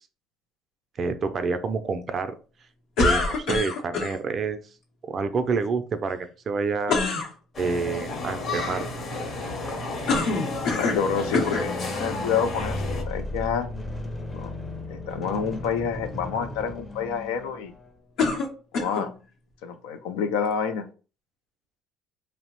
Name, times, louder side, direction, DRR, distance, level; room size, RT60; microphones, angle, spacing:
voice 1, 1.0-2.4 3.0-4.6 5.0-7.0 7.6-8.8, right 4 dB, 40° right, 10 dB, 0.4 m, -28 dB
sound 1, 3.0-4.2 6.9-7.3 10.1-11.1 11.3-11.7 12.5-12.6 18.2-19.1, left 3 dB, 70° left, 0.8 m, -25 dB
sound 2, 7.5-13.0, left 2 dB, 45° left, 0.9 m, -32 dB
sound 3, 9.2-17.9, left 2 dB, 20° left, 0.6 m, -36 dB
voice 2, 10.6-13.7 14.3-14.5 14.9-17.7 18.7-19.1 19.6-20.9, left 6 dB, 90° left, 8 dB, 0.4 m, -28 dB
2.8 x 2.0 x 2.9 m, 0.35 s
supercardioid pair, 90°, 0 cm